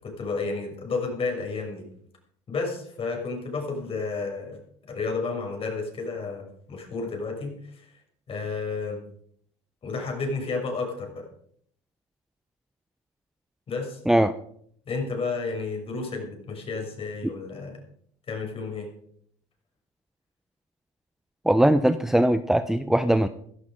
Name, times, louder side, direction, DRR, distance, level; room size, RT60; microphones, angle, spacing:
voice 1, 0.0-1.8 2.5-4.6 4.9-7.8 8.3-9.0 9.8-11.3 13.7-14.0 14.9-17.8 18.3-18.9, left 4 dB, 35° left, 2 dB, 6.5 m, -31 dB
voice 2, 21.5-23.3, right 1 dB, ahead, 11 dB, 0.7 m, -20 dB
16.0 x 12.5 x 5.1 m, 0.65 s
supercardioid pair, 90°, 16 cm